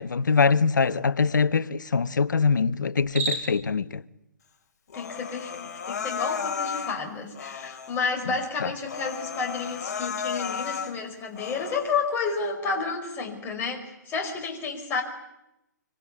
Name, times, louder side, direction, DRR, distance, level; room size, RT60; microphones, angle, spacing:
voice 1, 0.0-4.0 8.3-8.4 8.6-8.7, left 5 dB, 80° left, 1.0 m, -23 dB
Cricket, 3.0-3.7, right 4 dB, 20° right, 4.5 m, -31 dB
Human voice, 4.9-7.0 7.4-8.0 8.4-8.5 8.8-10.9 11.3-11.9, left 6 dB, 55° left, 3.6 m, -33 dB
voice 2, 4.9-15.0, left 4 dB, 20° left, 5.3 m, -31 dB
25.5 x 24.5 x 8.5 m
hypercardioid pair, 135°, 10 cm